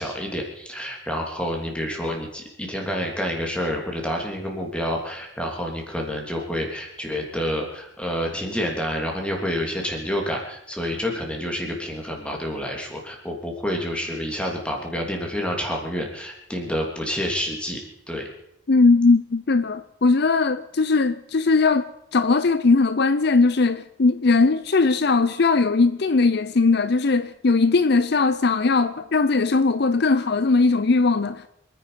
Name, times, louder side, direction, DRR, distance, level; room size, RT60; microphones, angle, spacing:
voice 1, 0.0-18.3, equal, 5° left, 3.1 m, -28 dB
voice 2, 18.7-21.9 22.1-31.5, left 3 dB, 55° left, 0.6 m, -19 dB
26.5 x 10.0 x 5.1 m
head